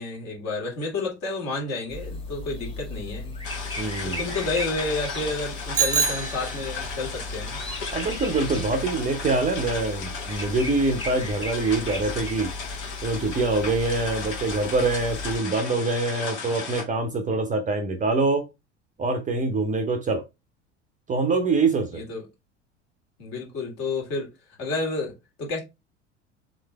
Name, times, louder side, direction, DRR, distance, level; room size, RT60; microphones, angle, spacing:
voice 1, 0.0-3.4 4.0-7.6 21.9-22.2 23.2-24.3 24.6-25.1 25.4-25.6, left 3 dB, 45° left, 1.8 m, -30 dB
sound 1, 1.9-15.4, left 2 dB, 15° left, 1.3 m, -36 dB
sound 2, 3.4-16.8, left 5 dB, 65° left, 1.4 m, -36 dB
voice 2, 3.8-4.3 7.9-12.5 13.0-18.5 19.0-20.2 21.1-22.0, right 3 dB, 20° right, 0.6 m, -25 dB
Bicycle bell, 5.7-7.0, right 6 dB, 85° right, 0.6 m, -26 dB
3.7 x 3.2 x 3.2 m
figure-of-eight pair, 70°, 36 cm